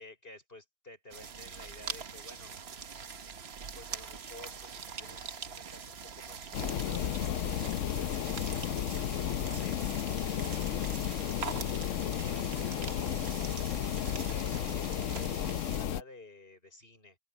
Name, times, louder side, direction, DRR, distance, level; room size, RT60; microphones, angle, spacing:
voice 1, 0.0-2.5 3.7-8.4 9.2-13.5 14.3-17.2, left 2 dB, 45° left, 5.8 m, -53 dB
sound 1, 1.1-15.9, right 6 dB, 50° right, 1.3 m, -43 dB
sound 2, 6.5-16.0, left 10 dB, 70° left, 1.0 m, -33 dB
open air
omnidirectional pair, 1.4 m